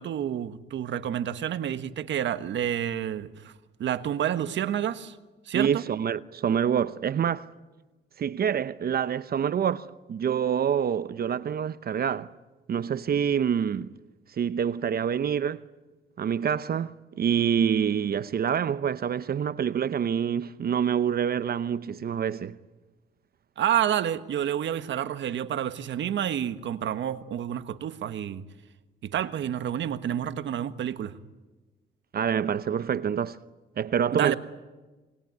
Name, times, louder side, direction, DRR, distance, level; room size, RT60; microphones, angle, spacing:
voice 1, 0.0-3.5 3.8-5.2 5.4-5.8 23.6-28.4 29.0-31.2 34.1-34.4, right 10 dB, 70° right, 1.5 m, -29 dB
voice 2, 5.5-7.5 8.2-12.3 12.7-13.9 14.3-15.6 16.2-22.6 32.1-33.4 33.8-34.4, right 8 dB, 50° right, 0.8 m, -26 dB
28.0 x 21.0 x 9.5 m
cardioid pair, 90°, 20 cm